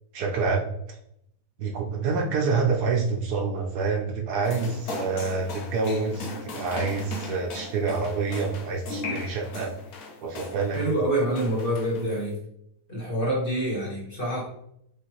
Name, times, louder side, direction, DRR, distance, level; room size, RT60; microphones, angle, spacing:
voice 1, 0.1-0.7 1.6-9.7 10.2-10.8, right 4 dB, 70° right, 2 dB, 1.2 m, -27 dB
sound 1, 4.4-11.0 11.3-12.3, left 2 dB, 65° left, 1.2 m, -38 dB
voice 2, 10.7-12.4 12.9-14.5, right 1 dB, 35° left, -5 dB, 1.4 m, -26 dB
6.6 x 2.5 x 3.0 m, 0.74 s
omnidirectional pair, 1.8 m